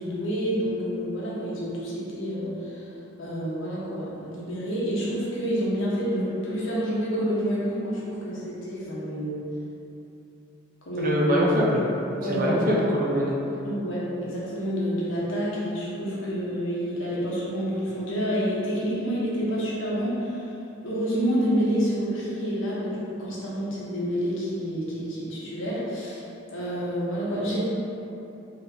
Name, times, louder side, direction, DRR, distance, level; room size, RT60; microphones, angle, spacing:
voice 1, 0.0-2.8 3.2-9.5 10.8-11.2 12.2-12.6 13.6-20.5 20.8-26.2 26.5-27.6, equal, 85° left, -7 dB, 1.0 m, -28 dB
voice 2, 11.0-11.9 12.3-13.4, equal, 45° right, -4 dB, 0.6 m, -23 dB
4.2 x 3.2 x 2.7 m, 2.9 s
head